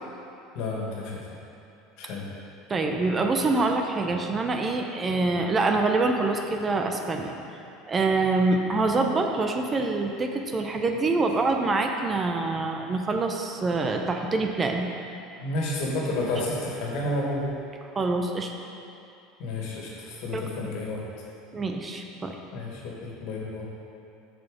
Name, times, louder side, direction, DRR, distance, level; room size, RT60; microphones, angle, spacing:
voice 1, 0.5-1.2 2.0-2.2 15.4-17.5 19.4-21.0 22.5-23.7, left 2 dB, 65° left, -3 dB, 1.9 m, -30 dB
voice 2, 2.7-7.3 7.9-14.9 18.0-18.5 20.3-20.5 21.5-22.4, right 3 dB, 25° right, 3 dB, 0.6 m, -25 dB
7.2 x 6.1 x 5.2 m, 2.7 s
supercardioid pair, 120°, 0 cm